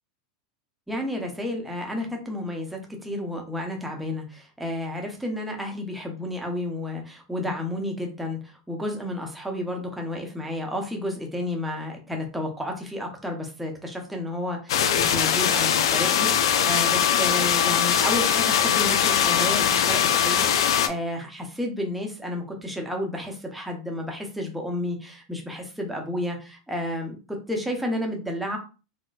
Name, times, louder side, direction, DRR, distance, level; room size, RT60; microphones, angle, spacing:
voice 1, 0.9-28.6, left 1 dB, 5° right, 1 dB, 0.8 m, -31 dB
sound 1, 14.7-20.9, left 9 dB, 85° left, 0.4 m, -21 dB
4.0 x 2.1 x 2.3 m, 0.33 s
supercardioid pair, 130°, 3 cm